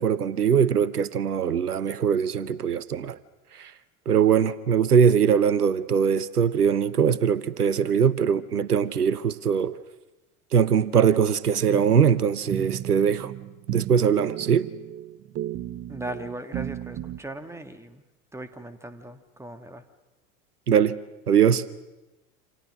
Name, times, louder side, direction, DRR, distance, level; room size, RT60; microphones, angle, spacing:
voice 1, 0.0-3.2 3.6-3.7 4.1-9.7 10.5-13.3 13.7-14.7 20.7-21.0 21.3-21.6, right 7 dB, 85° right, 0.8 m, -21 dB
sound 1, 11.7-17.2, right 13 dB, 30° right, 0.9 m, -35 dB
voice 2, 15.9-18.0 18.3-19.8, right 1 dB, 5° right, 1.7 m, -38 dB
28.5 x 26.5 x 6.5 m
figure-of-eight pair, 75°, 44 cm